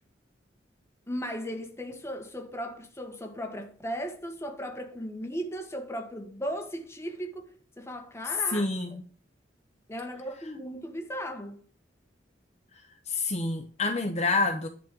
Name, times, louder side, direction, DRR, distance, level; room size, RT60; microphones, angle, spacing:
voice 1, 1.1-8.7 9.9-11.6, equal, 15° left, 1.4 m, -36 dB
voice 2, 8.5-9.0 13.1-14.7, left 3 dB, 35° left, 1.0 m, -28 dB
11.0 x 4.3 x 7.4 m
head